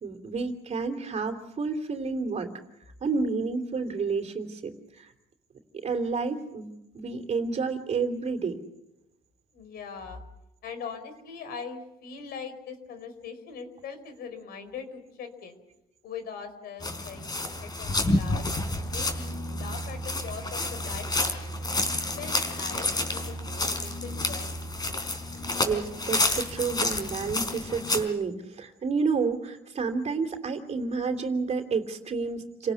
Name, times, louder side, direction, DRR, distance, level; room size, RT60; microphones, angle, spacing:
voice 1, 0.0-2.5 3.0-5.1 5.8-8.6 25.6-32.7, right 4 dB, 40° right, 5 dB, 3.2 m, -30 dB
voice 2, 9.5-10.2 10.6-15.6 16.0-19.3 19.5-21.7 22.2-24.7, left 6 dB, 70° left, 9 dB, 4.9 m, -41 dB
sound 1, 16.8-28.0, left 2 dB, 25° left, 4.1 m, -29 dB
29.5 x 18.0 x 7.1 m, 0.88 s
cardioid pair, 110°, 17 cm